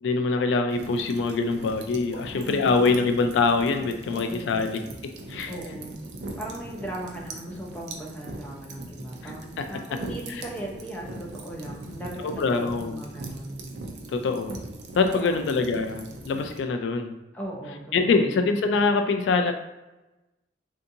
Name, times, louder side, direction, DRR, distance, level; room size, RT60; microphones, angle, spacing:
voice 1, 0.0-4.8 5.3-5.5 9.6-9.8 12.2-13.0 14.1-14.5 14.9-17.1 17.9-19.5, left 4 dB, 80° left, 7 dB, 0.3 m, -24 dB
sound 1, 0.7-16.6, right 2 dB, 65° right, 0.5 m, -41 dB
voice 2, 2.1-2.9 4.1-4.7 5.5-6.0 6.4-13.7 15.1-15.7 17.3-18.4, right 1 dB, 10° left, -2 dB, 0.5 m, -38 dB
3.4 x 2.7 x 2.6 m, 1.0 s
head